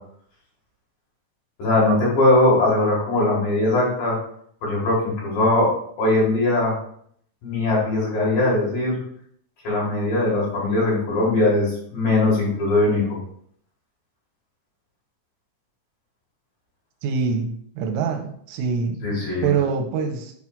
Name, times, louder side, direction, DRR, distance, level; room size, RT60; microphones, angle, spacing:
voice 1, 1.6-4.2 4.6-5.7 6.0-6.8 7.4-9.0 9.6-13.2 19.0-19.5, left 2 dB, 55° left, -5 dB, 3.1 m, -20 dB
voice 2, 17.0-19.2 19.4-20.3, right 6 dB, 85° right, 4 dB, 3.2 m, -25 dB
9.1 x 5.9 x 2.5 m, 0.65 s
omnidirectional pair, 5.8 m